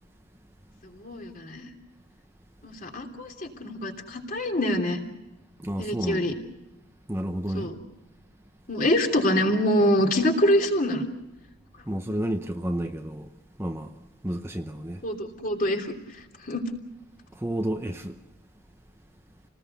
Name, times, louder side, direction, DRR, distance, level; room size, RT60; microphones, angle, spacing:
voice 1, 0.9-1.7 2.6-5.0 5.8-6.3 7.5-7.8 8.7-11.1 12.1-12.2 15.0-15.9 16.5-16.6, left 1 dB, 40° left, 3.1 m, -25 dB
voice 2, 5.6-6.3 7.1-7.7 11.9-13.3 13.6-14.0 14.2-15.0 17.3-18.2, right 1 dB, 10° right, 0.8 m, -31 dB
28.5 x 19.5 x 6.9 m
head